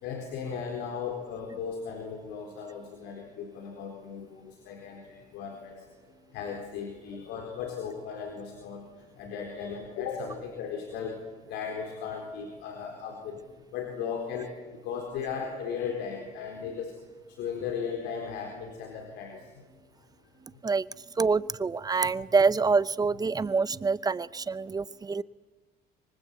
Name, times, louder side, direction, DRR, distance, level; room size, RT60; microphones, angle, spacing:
voice 1, 0.0-5.8 6.3-8.9 9.2-11.2 11.5-13.4 13.7-16.9 17.4-19.4 22.1-22.2, left 6 dB, 90° left, 3 dB, 4.3 m, -36 dB
voice 2, 21.2-25.2, right 4 dB, 20° right, 18 dB, 0.7 m, -26 dB
25.5 x 23.5 x 8.4 m, 1.3 s
cardioid pair, 110°, 17 cm